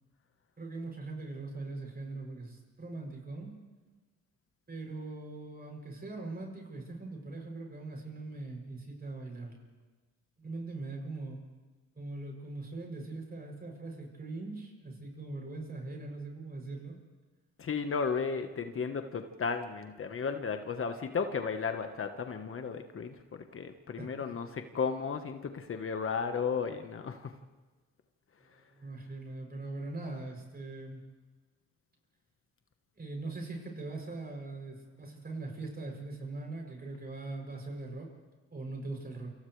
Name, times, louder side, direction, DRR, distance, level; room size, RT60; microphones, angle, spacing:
voice 1, 0.6-3.5 4.7-9.6 10.4-11.4 12.0-17.0 24.0-24.3 28.4-31.0 33.0-38.1 38.5-39.3, right 2 dB, 30° right, 1 dB, 7.7 m, -41 dB
voice 2, 17.6-27.3, left 5 dB, 45° left, 7 dB, 1.4 m, -34 dB
29.0 x 26.5 x 3.4 m, 1.3 s
cardioid pair, 90°, 30 cm